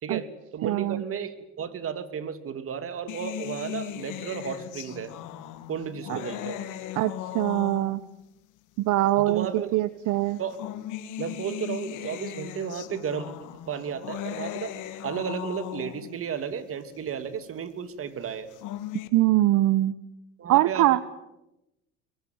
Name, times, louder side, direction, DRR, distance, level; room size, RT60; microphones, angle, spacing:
voice 1, 0.0-5.1 5.7-6.6 9.1-9.8 10.4-10.6 11.2-13.3 13.7-14.7 15.0-18.5 20.4-21.0, right 7 dB, 45° right, 11 dB, 2.8 m, -33 dB
voice 2, 0.6-1.0 6.1-6.2 7.0-8.0 8.8-9.5 9.7-10.4 19.1-19.9 20.5-21.0, right 15 dB, 65° right, 15 dB, 1.1 m, -22 dB
sound 1, 3.1-8.2 9.1-9.2 10.3-16.2 18.3-19.1, left 12 dB, 70° left, 2.8 m, -37 dB
24.5 x 22.5 x 9.5 m, 0.91 s
supercardioid pair, 100°, 32 cm